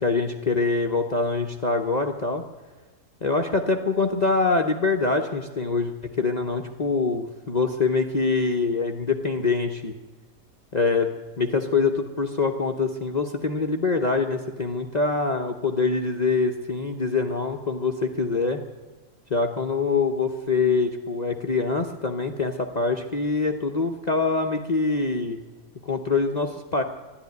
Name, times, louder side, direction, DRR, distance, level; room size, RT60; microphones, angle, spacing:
voice 1, 0.0-2.4 3.2-9.9 10.7-18.6 19.3-25.4 25.8-26.8, left 4 dB, 35° left, 3 dB, 0.8 m, -24 dB
13.0 x 11.5 x 9.4 m, 1.3 s
omnidirectional pair, 1.5 m